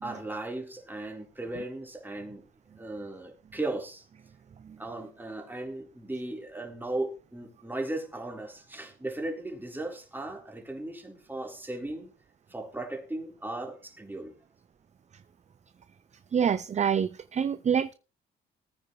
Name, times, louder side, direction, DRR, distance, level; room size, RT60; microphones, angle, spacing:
voice 1, 0.0-2.4 2.8-4.0 4.8-12.1 12.5-14.3, right 2 dB, 10° right, 4.0 m, -37 dB
voice 2, 16.3-17.9, right 7 dB, 35° right, 0.6 m, -26 dB
19.0 x 9.2 x 3.2 m
cardioid pair, 90°, 20 cm